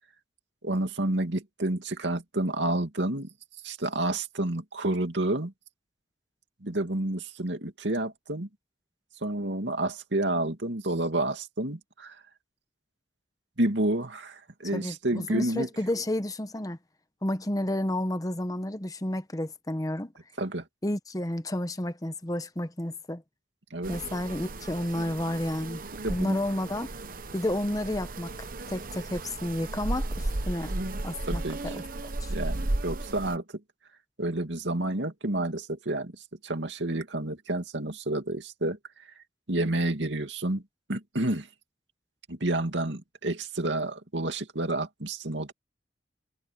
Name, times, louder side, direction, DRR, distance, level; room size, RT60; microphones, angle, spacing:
voice 1, 0.6-3.3 3.6-5.5 6.6-8.5 9.2-12.2 13.6-15.7 20.4-20.6 23.7-23.9 26.0-26.4 31.3-31.7 32.3-33.4 34.2-38.8 39.5-40.6 40.9-41.5 42.3-45.5, right 1 dB, 80° right, 2.5 m, -29 dB
voice 2, 14.7-16.8 17.2-20.1 20.8-23.2 23.9-25.8 26.1-26.9 27.3-30.7 31.0-31.8 32.2-32.3, left 1 dB, 20° left, 1.0 m, -31 dB
sound 1, 23.8-33.4, right 2 dB, 50° right, 1.0 m, -34 dB
head